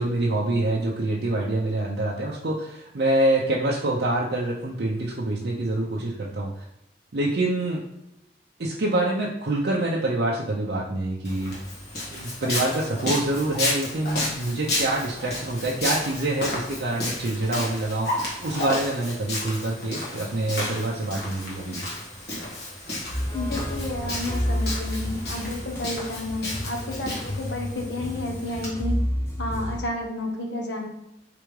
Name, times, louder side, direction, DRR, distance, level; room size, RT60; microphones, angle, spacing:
voice 1, 0.0-6.6 7.1-7.8 8.6-11.6 12.1-21.9, right 2 dB, 65° right, -3 dB, 0.5 m, -26 dB
Walk footsteps, 11.2-28.7, left 1 dB, 65° left, 1.4 m, -32 dB
sound 1, 23.1-29.8, equal, 15° left, 0.6 m, -30 dB
voice 2, 23.3-29.0 29.4-30.9, left 1 dB, 90° left, 1 dB, 1.0 m, -31 dB
4.8 x 3.4 x 3.1 m, 0.87 s
head